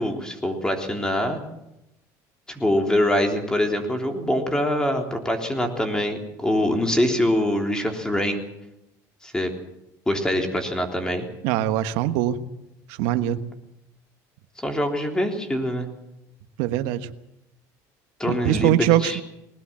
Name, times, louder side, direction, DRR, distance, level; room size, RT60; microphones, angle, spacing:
voice 1, 0.0-1.4 2.5-8.4 9.2-9.5 10.1-11.3 14.6-15.9 18.2-19.2, left 1 dB, 10° left, 4 dB, 3.5 m, -24 dB
voice 2, 11.4-12.4 12.9-13.4 16.6-17.1 18.3-19.2, right 13 dB, 80° right, 10 dB, 1.3 m, -22 dB
20.5 x 19.5 x 7.5 m, 0.87 s
cardioid pair, 125°, 8 cm